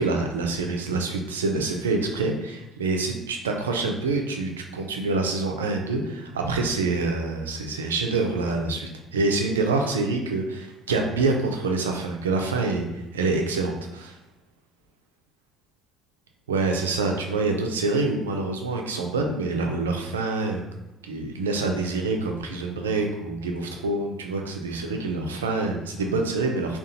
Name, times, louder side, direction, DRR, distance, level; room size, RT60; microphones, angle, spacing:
voice 1, 0.0-14.2 16.5-20.6 21.0-26.8, right 3 dB, 90° right, 2 dB, 0.3 m, -26 dB
3.7 x 2.3 x 2.7 m, 0.95 s
hypercardioid pair, 55°, 0 cm